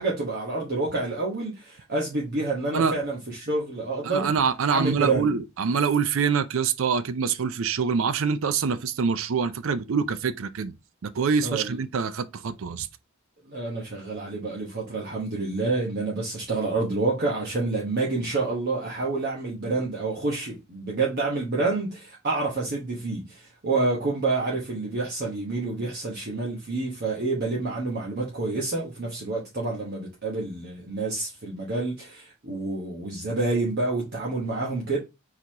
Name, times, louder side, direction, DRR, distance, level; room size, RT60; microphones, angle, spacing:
voice 1, 0.0-4.3 4.7-5.3 11.4-11.8 13.5-35.0, right 3 dB, 50° right, 1.1 m, -28 dB
voice 2, 4.0-10.7 11.0-12.9, right 6 dB, 70° right, 0.5 m, -25 dB
4.6 x 3.9 x 2.8 m
head